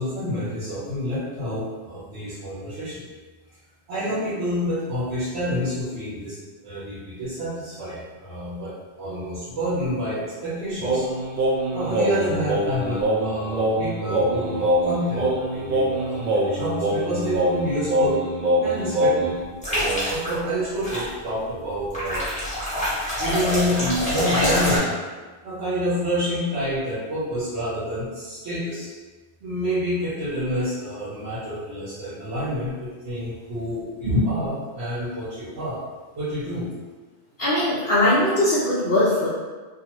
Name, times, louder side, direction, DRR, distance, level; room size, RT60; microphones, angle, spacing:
voice 1, 0.0-3.0 3.9-6.4 6.6-11.1 11.7-18.2 18.6-19.3 19.7-22.3 23.2-24.9 25.4-28.9 29.4-35.8 36.2-36.7, equal, 80° right, -12 dB, 1.1 m, -28 dB
Singing, 10.8-19.4, right 1 dB, 50° right, 0.6 m, -23 dB
sound 1, 19.6-20.3 20.8-21.1 21.9-24.8, left 1 dB, 5° left, 1.0 m, -25 dB
voice 2, 37.4-39.3, left 1 dB, 55° left, -11 dB, 0.8 m, -20 dB
2.7 x 2.4 x 2.9 m, 1.3 s
omnidirectional pair, 1.1 m